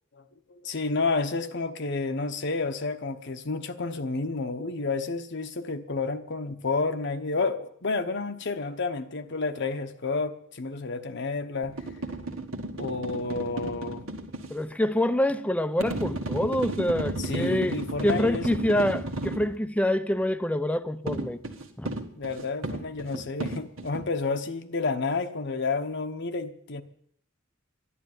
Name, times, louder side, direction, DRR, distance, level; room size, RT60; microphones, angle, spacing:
voice 1, 0.5-11.8 12.8-14.0 17.2-18.5 22.2-26.8, left 3 dB, 60° left, 1.0 m, -30 dB
sound 1, 11.6-14.5 15.8-19.5 21.1-24.0, right 2 dB, 80° right, 1.7 m, -33 dB
voice 2, 14.5-21.4 21.8-21.9, left 1 dB, 5° left, 0.6 m, -26 dB
12.0 x 11.5 x 9.5 m
head